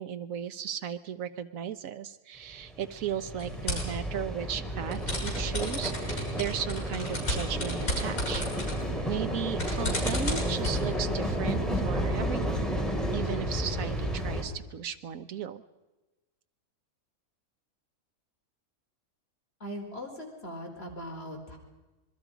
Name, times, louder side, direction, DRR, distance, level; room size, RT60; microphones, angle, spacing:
voice 1, 0.0-8.4 9.1-12.8 13.1-15.6, right 9 dB, 65° right, 10 dB, 1.3 m, -36 dB
sound 1, 2.5-14.4, equal, ahead, 2.9 m, -32 dB
sound 2, 3.4-3.9 4.9-10.8, left 1 dB, 65° left, 7.0 m, -35 dB
Mallet percussion, 4.7-10.5, right 4 dB, 30° right, 4.8 m, -53 dB
voice 2, 19.6-21.6, equal, 40° left, 0 dB, 4.4 m, -40 dB
26.5 x 21.5 x 5.1 m, 1.1 s
omnidirectional pair, 1.6 m